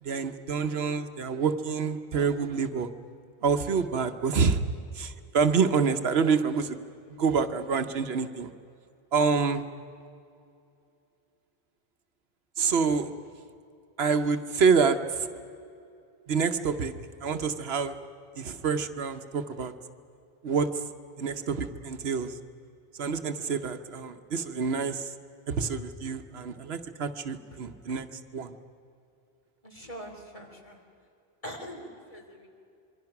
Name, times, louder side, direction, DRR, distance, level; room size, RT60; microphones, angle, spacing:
voice 1, 0.0-2.9 3.4-4.6 4.9-6.8 7.1-8.5 9.1-9.6 12.6-13.1 14.0-15.3 16.3-16.9 17.2-18.0 18.4-19.7 20.4-20.8 21.2-22.4 22.9-25.1 25.5-28.1 28.3-28.6, right 5 dB, 80° right, 9 dB, 1.2 m, -27 dB
voice 2, 29.6-30.8 31.4-32.5, equal, 35° left, 1 dB, 3.2 m, -42 dB
26.0 x 23.5 x 5.9 m, 2.6 s
omnidirectional pair, 1.0 m